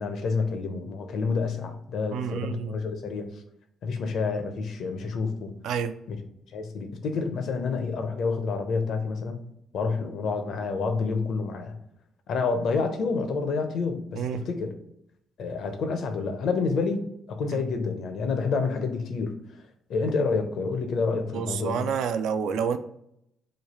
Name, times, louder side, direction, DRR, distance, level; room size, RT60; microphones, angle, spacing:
voice 1, 0.0-3.3 3.8-5.5 6.1-6.2 6.5-9.4 9.7-11.7 12.3-14.7 15.4-19.3 19.9-21.9, left 4 dB, 70° left, 0.6 m, -28 dB
voice 2, 2.1-2.8 5.6-5.9 14.2-14.5 17.5-17.6 21.3-22.8, right 7 dB, 85° right, 0.3 m, -29 dB
3.2 x 2.3 x 4.2 m
cardioid pair, 90°, 0 cm